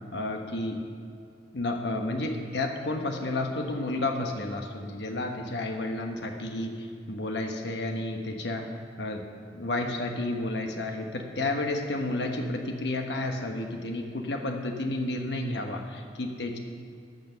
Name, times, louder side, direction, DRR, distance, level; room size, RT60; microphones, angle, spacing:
voice 1, 0.1-0.8 1.5-8.7 9.0-9.2 9.5-16.6, left 2 dB, 75° left, 3 dB, 1.1 m, -31 dB
13.5 x 6.5 x 5.7 m, 2.4 s
head